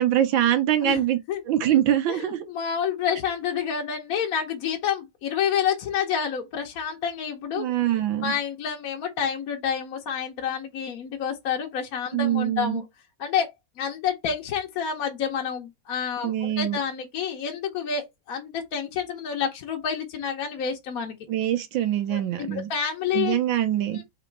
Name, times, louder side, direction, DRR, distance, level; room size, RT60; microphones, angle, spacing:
voice 1, 0.0-1.2 1.5-2.4 7.6-8.3 12.1-12.8 16.2-16.8 21.3-22.7 23.1-24.0, right 11 dB, 85° right, 1.5 m, -23 dB
voice 2, 2.1-7.7 8.2-12.8 13.2-21.2 22.1-23.4 23.9-24.0, left 7 dB, 60° left, 1.0 m, -29 dB
3.8 x 3.0 x 4.4 m
omnidirectional pair, 2.1 m